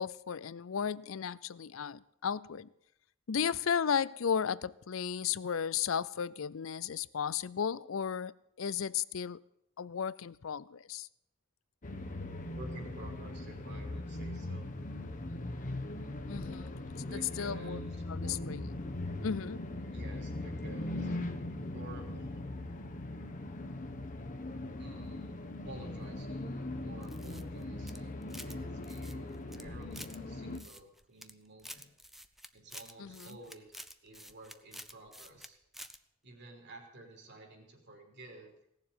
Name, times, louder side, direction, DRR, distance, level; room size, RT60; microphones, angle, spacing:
voice 1, 0.0-2.7 3.3-9.4 9.8-11.1 16.3-17.1 17.4-17.8 18.1-18.7 19.2-19.7 33.0-33.3, left 7 dB, 70° left, 0.5 m, -34 dB
sound 1, 11.8-30.6, left 2 dB, 40° left, 1.1 m, -40 dB
voice 2, 12.6-14.7 17.0-18.0 18.2-18.4 19.9-21.2 21.7-22.5 24.8-31.9 32.5-33.7 34.0-35.6 36.2-38.5, right 1 dB, 55° right, 3.5 m, -51 dB
sound 2, 27.0-28.6 28.8-30.2 30.5-31.3 31.6-35.5 35.7-36.0, equal, ahead, 0.6 m, -49 dB
17.5 x 7.3 x 9.3 m
head